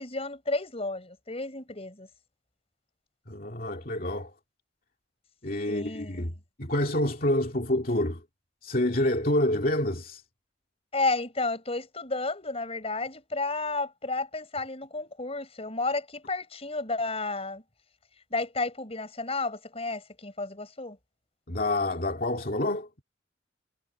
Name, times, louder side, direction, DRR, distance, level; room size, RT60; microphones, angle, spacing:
voice 1, 0.0-2.1 5.7-6.3 10.9-17.6 18.3-21.0, left 3 dB, 30° left, 5.5 m, -32 dB
voice 2, 3.3-4.3 5.4-6.3 6.6-8.2 8.6-10.2 21.5-23.0, left 1 dB, 50° left, 2.3 m, -27 dB
head